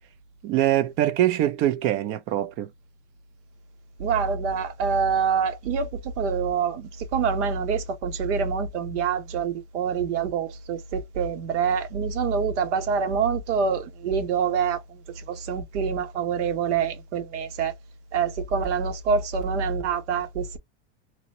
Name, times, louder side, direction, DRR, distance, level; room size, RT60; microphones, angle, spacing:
voice 1, 0.4-2.7, right 13 dB, 40° right, 0.4 m, -23 dB
voice 2, 4.0-17.7 18.1-20.6, right 6 dB, 85° right, 1.1 m, -26 dB
3.0 x 2.7 x 2.8 m
supercardioid pair, 140°, 35 cm